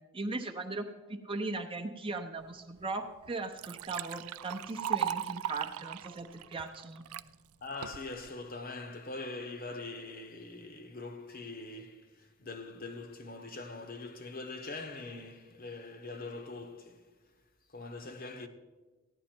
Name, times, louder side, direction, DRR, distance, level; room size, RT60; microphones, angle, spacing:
voice 1, 0.1-7.0, right 3 dB, 25° right, 0.7 m, -38 dB
Liquid, 2.8-2.9 3.2-7.3 7.8-8.3, right 9 dB, 85° right, 0.4 m, -37 dB
voice 2, 7.6-17.1 17.7-18.5, left 3 dB, 40° left, 1.0 m, -43 dB
15.5 x 10.5 x 4.4 m
head